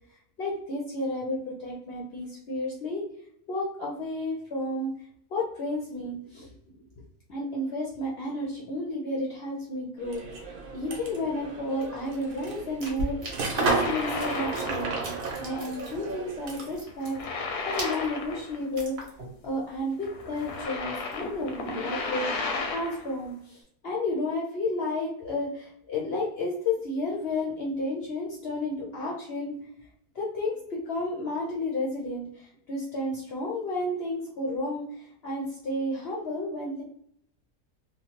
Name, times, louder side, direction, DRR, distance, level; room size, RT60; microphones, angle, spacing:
voice 1, 0.4-3.0 3.5-4.9 5.3-6.5 7.3-15.0 15.4-17.2 17.6-19.0 19.4-29.5 30.1-36.8, left 1 dB, 60° left, -3 dB, 0.6 m, -32 dB
sound 1, 10.0-16.8, right 4 dB, 75° right, 1.1 m, -33 dB
sound 2, 11.8-16.2 16.4-19.5 19.8-19.9 20.2-21.4 21.8-22.6, right 1 dB, 50° right, 1.0 m, -40 dB
sound 3, 13.4-15.0 15.3-15.6 16.9-18.8 19.0-19.1 20.0-23.1, left 4 dB, 90° left, 1.1 m, -34 dB
3.0 x 2.1 x 2.8 m, 0.69 s
omnidirectional pair, 1.5 m